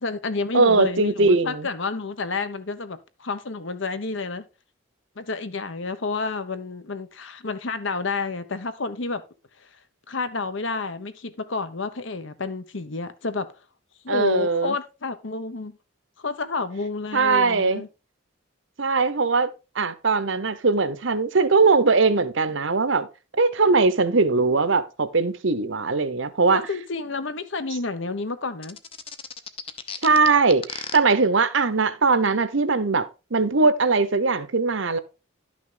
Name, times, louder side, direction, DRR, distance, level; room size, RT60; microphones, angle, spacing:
voice 1, 0.0-4.4 5.2-9.2 9.6-9.7 10.1-13.5 14.0-15.8 16.2-17.9 26.5-28.8, left 4 dB, 65° left, 1.0 m, -30 dB
voice 2, 0.5-1.7 14.1-14.7 17.1-17.8 18.8-23.1 23.3-26.6 30.0-33.1 33.3-35.0, right 4 dB, 65° right, 0.9 m, -20 dB
sound 1, 28.6-31.0, left 6 dB, 25° left, 0.7 m, -35 dB
11.5 x 6.1 x 3.9 m
head